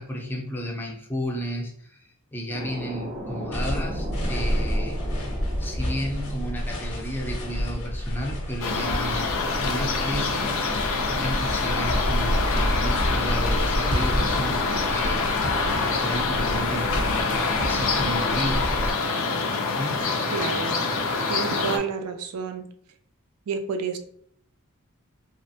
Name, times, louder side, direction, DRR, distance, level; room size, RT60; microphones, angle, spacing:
voice 1, 0.0-5.0 5.6-10.6 11.1-15.3 15.8-18.8 19.8-20.2, equal, 10° left, 0 dB, 0.5 m, -33 dB
sound 1, 2.5-8.9, equal, 35° right, 0.6 m, -38 dB
sound 2, 3.5-18.9, equal, 80° left, 1.0 m, -29 dB
sound 3, 8.6-21.8, left 4 dB, 65° left, 0.5 m, -26 dB
voice 2, 20.3-20.8 21.3-22.7 23.5-24.0, right 5 dB, 85° right, 8 dB, 0.4 m, -30 dB
3.0 x 2.1 x 2.7 m, 0.63 s
head